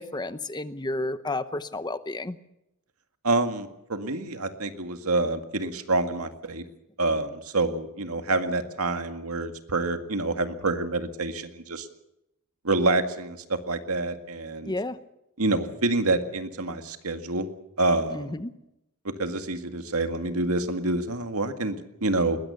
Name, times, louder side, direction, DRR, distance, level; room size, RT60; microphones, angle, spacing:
voice 1, 0.0-2.4 14.7-15.0 18.1-18.5, left 2 dB, 20° left, 12 dB, 0.8 m, -31 dB
voice 2, 3.2-6.6 7.0-11.9 12.6-14.7 15.4-17.5 17.8-18.4 19.2-22.4, right 2 dB, 90° right, 7 dB, 2.0 m, -27 dB
21.0 x 20.5 x 7.0 m, 0.84 s
head